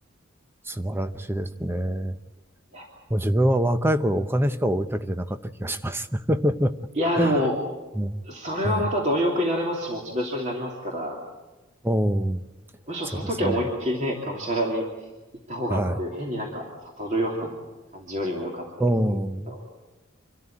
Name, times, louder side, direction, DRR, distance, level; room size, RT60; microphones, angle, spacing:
voice 1, 0.7-2.2 3.1-6.8 7.1-7.5 8.0-8.1 8.6-8.8 11.8-12.4 13.1-13.6 15.7-16.0 18.8-19.5, right 1 dB, 10° right, 11 dB, 0.7 m, -25 dB
voice 2, 7.0-7.5 8.2-11.2 12.9-14.8 15.5-17.5 17.9-18.6 19.5-19.7, equal, 35° right, -1 dB, 2.8 m, -27 dB
25.5 x 13.5 x 9.2 m, 1.2 s
head